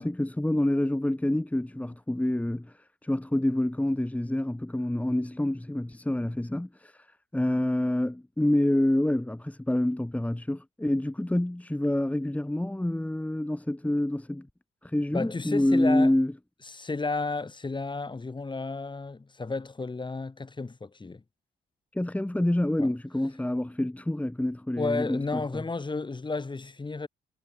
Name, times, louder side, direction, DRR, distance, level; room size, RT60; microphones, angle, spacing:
voice 1, 0.0-7.1 7.3-14.5 14.8-16.3 21.9-25.6, left 1 dB, 5° left, 2.2 m, -27 dB
voice 2, 15.1-16.1 16.7-21.2 22.8-22.9 24.8-27.1, left 3 dB, 25° left, 3.4 m, -32 dB
cardioid pair, 90°, 20 cm